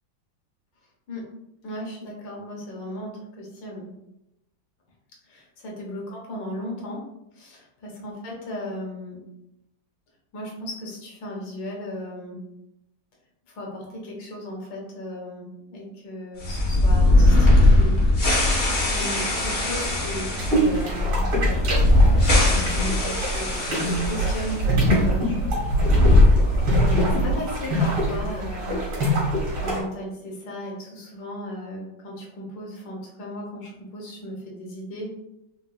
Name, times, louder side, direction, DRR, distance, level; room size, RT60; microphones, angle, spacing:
voice 1, 1.6-3.9 5.3-7.0 7.3-9.2 10.3-12.4 13.5-21.3 22.7-25.4 26.7-28.8 29.6-35.1, equal, 75° left, -2 dB, 1.6 m, -36 dB
sound 1, 16.4-24.6 24.9-25.0 25.6-27.0, left 1 dB, 50° left, 0.7 m, -19 dB
sound 2, 20.4-29.8, right 1 dB, 90° right, 2.2 m, -24 dB
4.8 x 2.2 x 2.4 m, 0.88 s
omnidirectional pair, 2.1 m